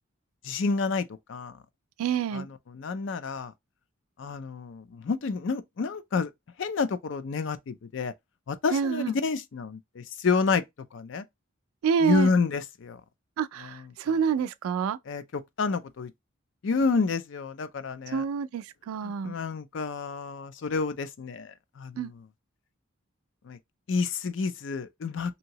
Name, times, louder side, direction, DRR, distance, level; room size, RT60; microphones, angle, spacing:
voice 1, 0.4-1.6 2.3-3.5 4.2-6.3 6.6-8.1 8.5-10.6 10.9-11.2 12.0-13.0 13.6-13.7 15.1-15.2 15.6-16.1 16.6-18.2 19.0-22.1 23.5-23.6 23.9-25.4, left 4 dB, 65° left, 0.4 m, -29 dB
voice 2, 2.0-2.5 8.7-9.1 11.8-12.3 13.4-15.0 18.1-19.3 22.0-22.1, right 7 dB, 85° right, 0.3 m, -27 dB
2.8 x 2.7 x 2.8 m
head